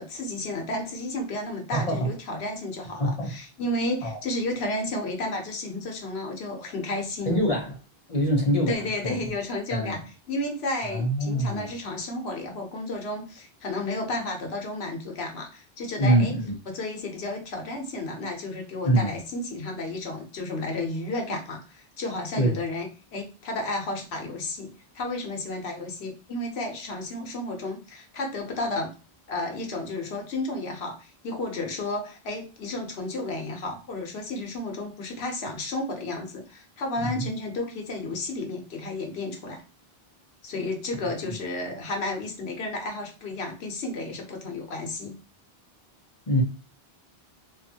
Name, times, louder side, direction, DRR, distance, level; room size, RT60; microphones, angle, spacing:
voice 1, 0.0-7.4 8.7-10.0 10.3-16.4 16.7-28.9 29.3-39.6 40.4-45.1, left 2 dB, 90° left, 1.0 m, -32 dB
voice 2, 1.7-2.1 3.0-3.3 4.0-4.2 7.3-7.8 8.1-8.7 9.0-9.2 9.7-10.0 10.8-11.7 16.0-16.5 18.8-19.1 22.4-22.5 37.0-37.3 46.3-46.4, right 1 dB, 40° left, 0.7 m, -24 dB
2.6 x 2.5 x 2.7 m
omnidirectional pair, 1.0 m